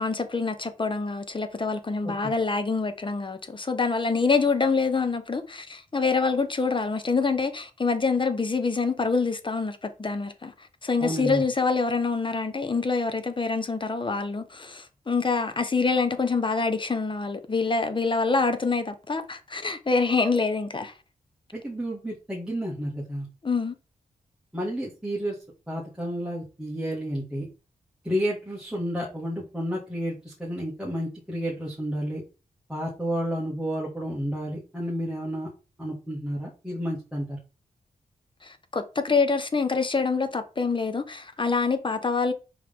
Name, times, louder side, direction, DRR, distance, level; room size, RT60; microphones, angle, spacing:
voice 1, 0.0-10.5 10.8-20.9 23.4-23.7 38.4-42.3, left 4 dB, 35° left, 1.1 m, -26 dB
voice 2, 11.0-11.4 21.5-23.3 24.5-25.4 25.7-27.5 28.0-32.2 32.7-35.5 35.8-37.4, equal, 5° right, 2.1 m, -31 dB
5.7 x 4.6 x 3.7 m
cardioid pair, 70°, 15 cm